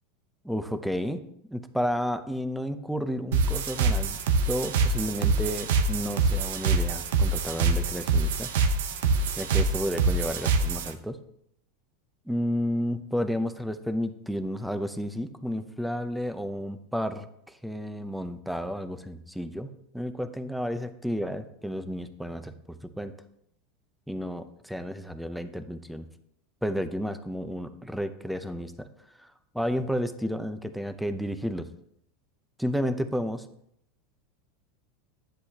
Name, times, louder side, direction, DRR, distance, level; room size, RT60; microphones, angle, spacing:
voice 1, 0.4-1.2 1.5-4.2 4.5-8.5 9.4-11.2 12.3-19.7 19.9-23.1 24.1-26.1 26.6-28.9 29.2-29.3 29.5-31.7 32.6-33.5, equal, ahead, 10 dB, 0.7 m, -31 dB
sound 1, 3.3-10.9, right 4 dB, 80° right, 0.9 m, -25 dB
10.0 x 7.9 x 2.9 m, 0.72 s
hypercardioid pair, 110°, 0 cm